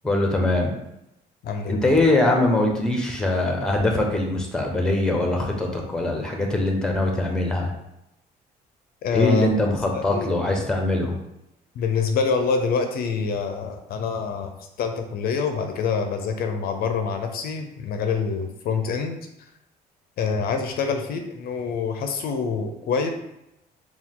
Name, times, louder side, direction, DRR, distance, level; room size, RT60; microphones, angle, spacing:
voice 1, 0.0-0.7 1.7-7.7 9.1-11.1, left 2 dB, 5° left, 1 dB, 0.8 m, -22 dB
voice 2, 1.4-1.9 9.0-9.6 9.9-10.3 11.8-14.5 14.8-19.2 20.2-23.1, left 5 dB, 65° left, 5 dB, 0.5 m, -26 dB
4.6 x 2.3 x 3.7 m, 0.85 s
cardioid pair, 110°, 17 cm